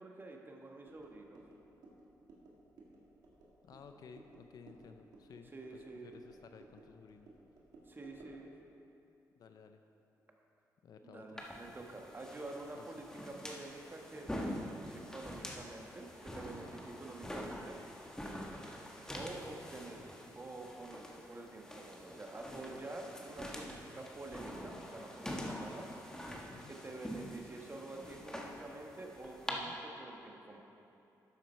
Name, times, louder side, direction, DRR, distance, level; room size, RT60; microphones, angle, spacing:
voice 1, 0.0-1.4 5.5-6.1 7.9-8.5 11.0-17.8 19.1-20.0 20.4-25.9 26.7-30.6, right 2 dB, 30° right, 1 dB, 1.4 m, -48 dB
sound 1, 0.9-8.5, right 2 dB, 80° right, 2.0 m, -59 dB
voice 2, 3.6-7.3 9.4-9.8 10.8-11.4 12.7-12.9 26.5-26.7 29.5-29.8, left 6 dB, 65° left, 7 dB, 0.5 m, -55 dB
sound 2, 11.4-29.5, equal, 10° left, 1.4 m, -46 dB
11.5 x 7.5 x 4.5 m, 2.9 s
cardioid pair, 75°, 7 cm